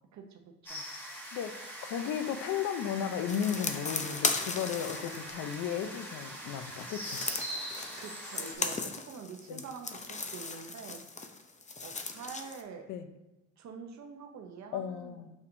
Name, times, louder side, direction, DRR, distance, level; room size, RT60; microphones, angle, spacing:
voice 1, 0.1-0.9 8.0-11.4 11.8-12.9 13.6-15.2, right 5 dB, 65° right, 4 dB, 0.7 m, -46 dB
sound 1, 0.7-8.6, equal, 5° left, 1.5 m, -42 dB
voice 2, 1.3-7.2 9.5-9.6 12.9-13.1 14.7-15.3, left 8 dB, 85° left, 9 dB, 0.6 m, -35 dB
sound 2, 3.3-6.0 6.6-12.6, left 4 dB, 25° left, 0.6 m, -37 dB
6.5 x 5.6 x 2.6 m, 1.0 s
cardioid pair, 90°, 30 cm